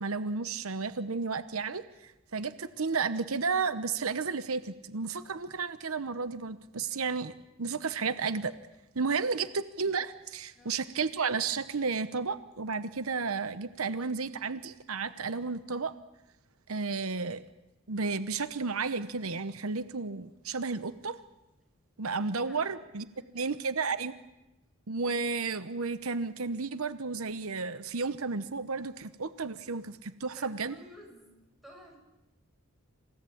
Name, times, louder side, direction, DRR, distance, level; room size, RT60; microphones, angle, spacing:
voice 1, 0.0-8.5 8.9-15.9 16.7-17.4 17.9-21.2 22.0-23.1 23.3-24.1 24.9-30.7, right 4 dB, 80° right, 12 dB, 1.0 m, -32 dB
voice 2, 22.1-22.6 23.0-23.6 30.3-31.4 31.6-32.0, equal, ahead, 0 dB, 7.4 m, -54 dB
28.0 x 17.0 x 8.7 m, 0.97 s
head